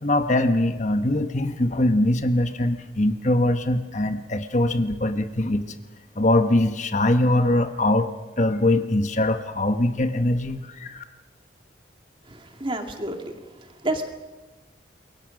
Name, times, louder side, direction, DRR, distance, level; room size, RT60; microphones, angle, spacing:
voice 1, 0.0-5.6 6.2-8.1 8.4-11.0, left 1 dB, 40° left, 8 dB, 1.2 m, -22 dB
voice 2, 12.3-13.3 13.6-14.1, right 1 dB, 30° right, 5 dB, 2.3 m, -30 dB
27.5 x 22.5 x 6.5 m, 1.2 s
head